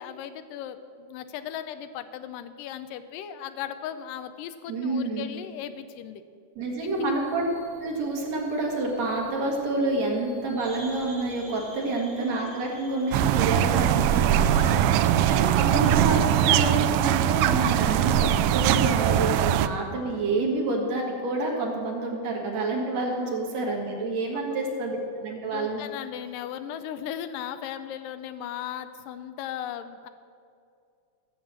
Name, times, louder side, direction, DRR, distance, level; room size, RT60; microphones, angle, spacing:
voice 1, 0.0-6.2 6.8-7.1 11.8-11.9 14.5-15.1 19.7-19.8 23.2-23.4 25.5-30.1, left 10 dB, 85° left, 10 dB, 1.9 m, -37 dB
voice 2, 4.7-5.3 6.6-7.4 7.8-14.5 15.3-25.8, right 2 dB, 50° right, -1 dB, 2.5 m, -28 dB
sound 1, 6.8-16.0, equal, 35° right, 3.2 m, -50 dB
sound 2, 13.1-19.7, right 11 dB, 85° right, 2.1 m, -21 dB
15.0 x 7.3 x 7.4 m, 2.3 s
omnidirectional pair, 4.6 m